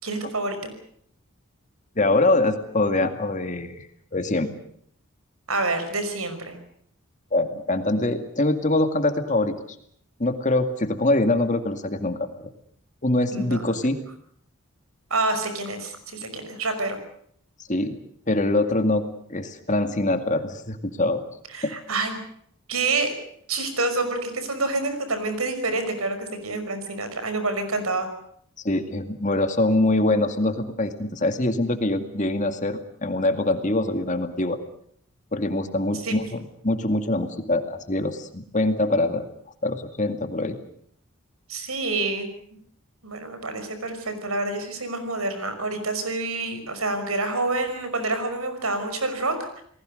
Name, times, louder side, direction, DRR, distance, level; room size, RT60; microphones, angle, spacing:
voice 1, 0.0-0.7 5.5-6.6 13.3-13.8 15.1-17.0 21.5-22.2 22.7-23.1 23.5-28.1 35.9-36.1 41.5-42.3 43.0-49.6, right 3 dB, 80° right, 8 dB, 5.6 m, -27 dB
voice 2, 2.0-3.9 4.1-4.5 7.3-9.5 10.2-12.5 13.0-14.0 17.7-18.0 18.3-19.0 19.3-21.2 21.6-21.8 28.6-34.6 35.3-39.3 39.6-40.6, left 2 dB, 35° left, 7 dB, 2.2 m, -24 dB
29.5 x 20.0 x 6.6 m, 0.67 s
head